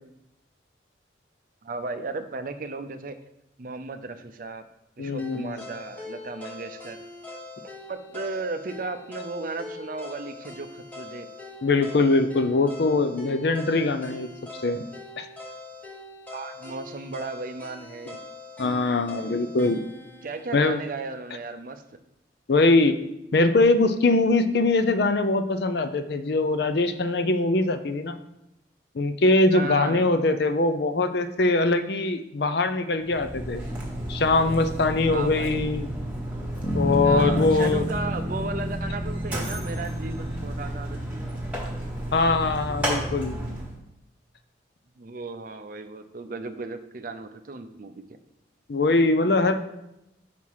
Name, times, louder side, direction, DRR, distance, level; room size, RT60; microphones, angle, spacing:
voice 1, 1.6-3.2 3.6-4.6 5.0-7.0 7.9-11.3 16.3-18.2 20.2-21.8 29.5-30.1 35.1-35.7 37.0-41.0 45.0-48.0, right 3 dB, 45° right, 8 dB, 0.5 m, -35 dB
voice 2, 5.0-5.6 11.6-14.3 14.6-14.8 15.2-15.3 18.6-19.9 20.5-20.8 22.5-23.0 23.3-28.2 28.9-33.6 34.1-35.9 36.7-37.9 42.1-43.4 48.7-49.5, left 2 dB, 60° left, 9 dB, 0.5 m, -22 dB
sound 1, 5.2-21.3, left 2 dB, 10° left, 1.0 m, -42 dB
Mechanisms, 33.0-43.8, right 1 dB, 10° right, 1.4 m, -32 dB
Bass guitar, 36.6-41.0, equal, 30° left, 1.1 m, -30 dB
5.9 x 4.7 x 5.5 m, 0.87 s
head